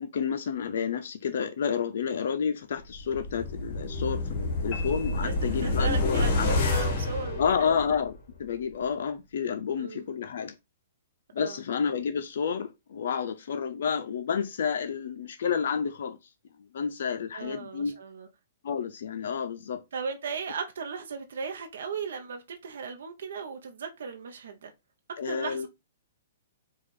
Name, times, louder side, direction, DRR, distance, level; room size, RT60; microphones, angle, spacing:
voice 1, 0.0-6.5 7.4-10.6 11.3-16.2 16.7-18.0 18.6-19.8 25.2-25.7, left 6 dB, 65° left, 0.5 m, -30 dB
sound 1, 2.9-8.2 8.5-8.6, left 2 dB, 50° left, 1.4 m, -28 dB
sound 2, 4.7-6.2, left 5 dB, 15° left, 2.6 m, -44 dB
voice 2, 5.6-7.8 9.8-10.0 11.4-11.6 17.3-18.3 19.9-24.7 25.3-25.7, right 5 dB, 75° right, 0.8 m, -36 dB
4.8 x 2.4 x 4.2 m
hypercardioid pair, 145°, 0 cm